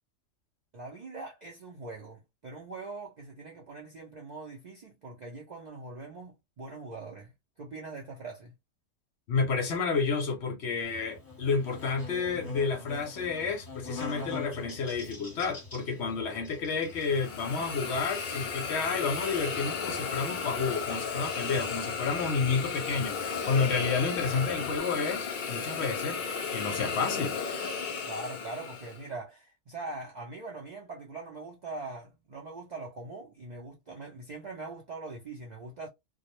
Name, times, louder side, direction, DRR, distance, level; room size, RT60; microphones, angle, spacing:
voice 1, 0.7-7.3 7.6-8.5 28.0-35.9, right 3 dB, 60° right, 0.4 m, -42 dB
voice 2, 9.3-27.4, left 4 dB, 65° left, 0.8 m, -30 dB
Buzz, 10.8-24.8, left 4 dB, 20° left, 0.7 m, -46 dB
Hiss, 16.9-29.0, left 5 dB, 85° left, 0.4 m, -34 dB
2.2 x 2.0 x 2.9 m
omnidirectional pair, 1.4 m